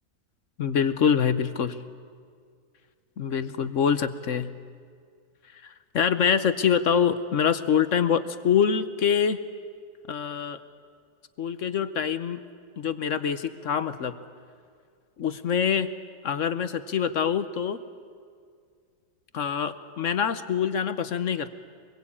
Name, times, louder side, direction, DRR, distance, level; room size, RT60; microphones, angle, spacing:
voice 1, 0.6-1.8 3.2-4.5 5.5-5.6 5.9-9.4 10.1-10.6 11.4-12.4 12.8-14.1 15.2-15.9 16.2-17.8 19.3-21.5, left 7 dB, 55° left, 11 dB, 1.0 m, -25 dB
26.0 x 22.0 x 8.6 m, 2.1 s
omnidirectional pair, 1.9 m